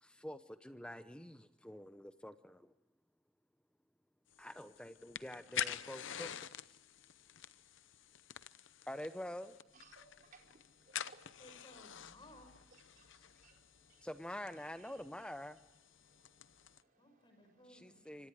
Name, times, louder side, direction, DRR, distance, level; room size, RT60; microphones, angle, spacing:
voice 1, 0.0-2.7 4.4-6.3 8.9-9.6 14.0-15.6 17.7-18.3, left 1 dB, 5° left, 11 dB, 0.7 m, -47 dB
sound 1, 4.3-16.8, left 10 dB, 60° left, 0.7 m, -48 dB
voice 2, 9.7-11.4 12.7-14.1 14.6-15.3 16.0-18.3, right 4 dB, 40° right, 2 dB, 4.4 m, -66 dB
voice 3, 11.4-12.6 17.0-18.0, left 1 dB, 25° left, 5 dB, 6.2 m, -59 dB
26.5 x 25.5 x 4.9 m, 0.91 s
head